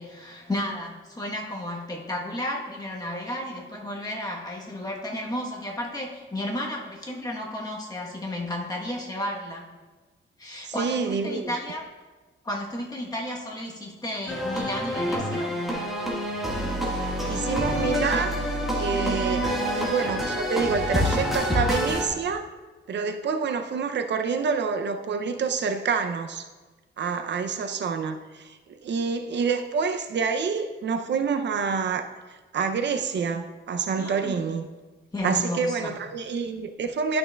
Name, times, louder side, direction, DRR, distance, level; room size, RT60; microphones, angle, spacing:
voice 1, 0.0-9.7 10.4-11.9 12.4-15.6 19.2-19.5 34.0-34.4 35.1-35.9, left 1 dB, 20° left, -1 dB, 1.0 m, -33 dB
voice 2, 10.6-11.6 17.3-18.3 18.8-22.5 22.9-26.5 27.0-32.1 32.5-34.7 35.2-37.2, right 5 dB, 60° right, 7 dB, 0.5 m, -27 dB
sound 1, 14.3-22.1, equal, ahead, 1.5 m, -27 dB
11.5 x 6.1 x 2.2 m, 1.3 s
wide cardioid pair, 155°, 20 cm